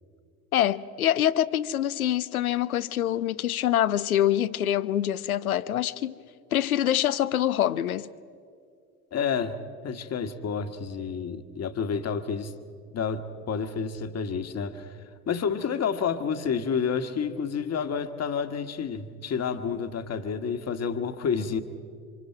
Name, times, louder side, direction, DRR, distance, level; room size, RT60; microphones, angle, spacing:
voice 1, 0.5-6.2 6.5-8.1, left 11 dB, 85° left, 0.6 m, -25 dB
voice 2, 9.1-9.6 9.8-12.5 12.9-14.9 15.3-21.6, left 6 dB, 35° left, 1.5 m, -29 dB
28.0 x 26.0 x 4.5 m
figure-of-eight pair, 55°, 43 cm